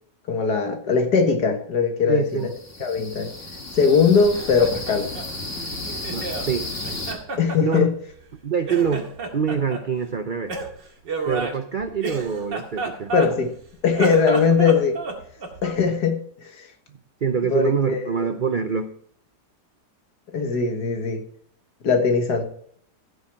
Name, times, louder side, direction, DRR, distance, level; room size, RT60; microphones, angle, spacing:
voice 1, 0.3-2.5 2.8-3.3 3.7-5.1 7.4-7.9 13.1-13.5 13.8-15.0 15.6-16.7 17.5-18.3 20.3-21.2 21.8-22.4, left 5 dB, 65° left, 2.1 m, -20 dB
voice 2, 2.1-2.5 6.1-6.7 7.6-7.8 8.4-9.1 9.3-10.5 11.2-13.1 17.2-18.9, right 6 dB, 60° right, 0.5 m, -25 dB
sound 1, 2.4-7.1, left 2 dB, 40° left, 3.0 m, -33 dB
Laughter, 4.2-6.5 6.8-8.4 8.6-9.8 10.5-13.6 13.9-15.8, right 3 dB, 90° right, 2.8 m, -31 dB
15.0 x 6.9 x 4.7 m
omnidirectional pair, 1.9 m